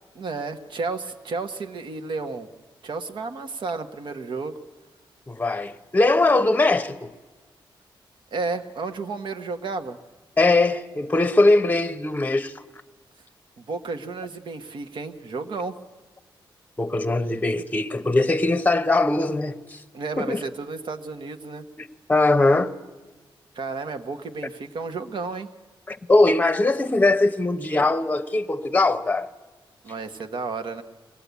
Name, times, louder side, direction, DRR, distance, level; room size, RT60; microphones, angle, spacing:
voice 1, 0.1-2.5 2.8-4.6 8.3-10.0 13.6-15.7 19.9-21.6 23.5-25.5 29.8-30.8, right 4 dB, 65° right, 1.3 m, -32 dB
voice 2, 5.3-7.1 10.4-12.5 16.8-19.8 20.2-20.4 21.8-22.7 25.9-29.3, left 2 dB, 20° left, 0.9 m, -21 dB
22.5 x 17.5 x 8.3 m
cardioid pair, 90°, 9 cm